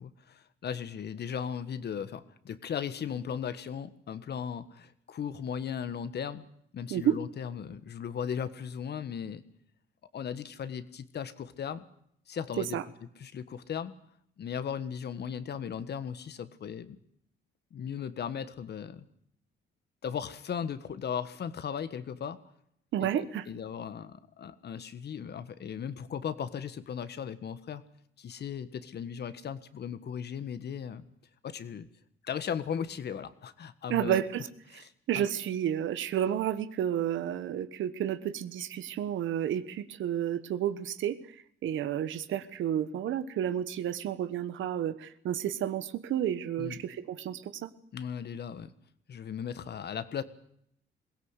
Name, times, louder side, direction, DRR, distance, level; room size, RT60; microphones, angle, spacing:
voice 1, 0.0-6.4 6.7-9.4 10.1-11.8 12.3-12.8 13.2-13.9 14.4-17.0 17.7-19.0 20.0-22.4 23.0-27.8 28.2-31.0 31.4-31.9 32.2-34.2 34.7-35.3 46.6-46.8 47.9-48.7 49.1-50.2, left 8 dB, 55° left, 12 dB, 1.6 m, -37 dB
voice 2, 22.9-23.4 33.9-34.5 34.7-34.8 35.1-41.2 41.6-47.7, right 10 dB, 75° right, 13 dB, 1.3 m, -31 dB
22.0 x 17.0 x 8.2 m, 0.72 s
cardioid pair, 90°, 20 cm